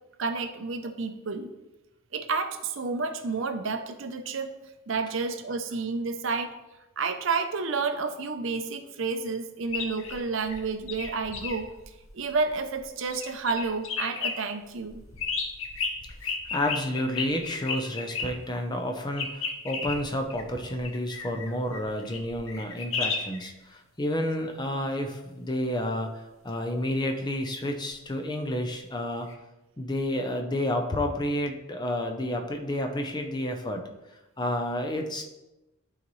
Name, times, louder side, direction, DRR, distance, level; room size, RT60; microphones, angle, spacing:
voice 1, 0.2-1.5 2.1-4.5 4.9-6.5 7.0-15.0, right 4 dB, 60° right, 8 dB, 0.6 m, -30 dB
sound 1, 9.6-12.8 13.1-14.3 14.8-18.3 19.2-23.5 29.3-29.4, left 5 dB, 65° left, 0.9 m, -34 dB
voice 2, 16.5-29.3 29.8-33.8 34.4-35.2, left 1 dB, 20° left, 4 dB, 0.6 m, -30 dB
11.5 x 4.0 x 3.1 m, 1.0 s
head